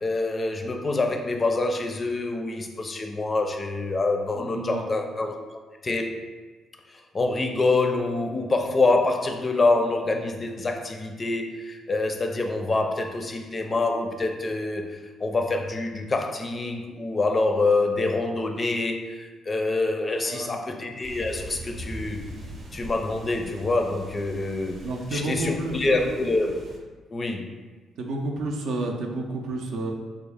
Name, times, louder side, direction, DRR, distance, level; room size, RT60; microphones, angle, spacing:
voice 1, 0.0-5.4 5.8-6.2 6.9-22.2 22.7-24.8 25.1-26.5 27.1-27.5, left 2 dB, 30° left, 3 dB, 0.4 m, -26 dB
voice 2, 4.3-4.8 20.2-20.8 24.8-26.2 28.0-29.9, right 2 dB, 80° right, 1 dB, 0.5 m, -31 dB
sound 1, 21.0-26.8, right 1 dB, 45° right, 0.7 m, -41 dB
3.5 x 2.3 x 3.4 m, 1.3 s
cardioid pair, 90°, 0 cm